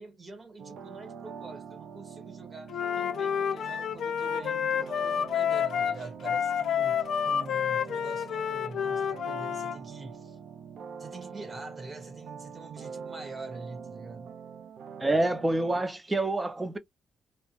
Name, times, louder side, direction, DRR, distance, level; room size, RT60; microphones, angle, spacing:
voice 1, 0.0-10.4 11.0-14.3, right 3 dB, 35° right, 1.1 m, -45 dB
sound 1, 0.6-15.8, right 6 dB, 70° right, 0.3 m, -44 dB
Wind instrument woodwind instrument, 2.7-9.8, left 8 dB, 70° left, 0.4 m, -29 dB
voice 2, 15.0-16.8, right 2 dB, 15° right, 0.5 m, -27 dB
2.2 x 2.0 x 3.0 m
cardioid pair, 85°, 0 cm